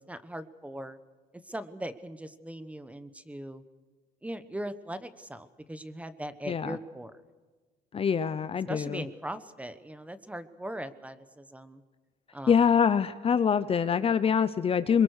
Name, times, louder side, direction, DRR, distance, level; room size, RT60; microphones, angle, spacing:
voice 1, 0.1-1.0 1.4-3.6 4.2-7.1 8.7-11.8 12.3-12.7, right 1 dB, 10° right, 13 dB, 1.1 m, -40 dB
voice 2, 6.5-6.8 7.9-9.0 12.5-15.0, left 7 dB, 35° left, 13 dB, 0.8 m, -25 dB
24.0 x 22.5 x 6.6 m, 1.4 s
cardioid pair, 110°, 17 cm